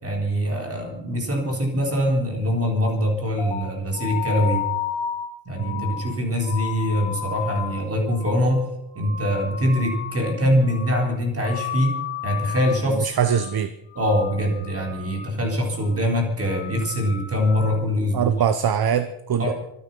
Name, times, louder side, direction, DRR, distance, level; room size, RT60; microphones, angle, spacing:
voice 1, 0.0-4.6 5.5-8.7 9.0-12.0 12.2-13.1 14.0-18.3 19.4-19.5, equal, 30° right, 1 dB, 3.9 m, -23 dB
sound 1, 3.4-10.4 10.6-11.1 11.4-12.9 13.2-13.6 13.9-15.4 15.7-16.1 16.4-17.8, left 9 dB, 80° left, 2.4 m, -33 dB
voice 2, 5.6-5.9 12.9-13.7 18.1-19.5, right 8 dB, 50° right, 11 dB, 0.9 m, -23 dB
24.5 x 9.8 x 5.6 m, 0.86 s
wide cardioid pair, 175°, 46 cm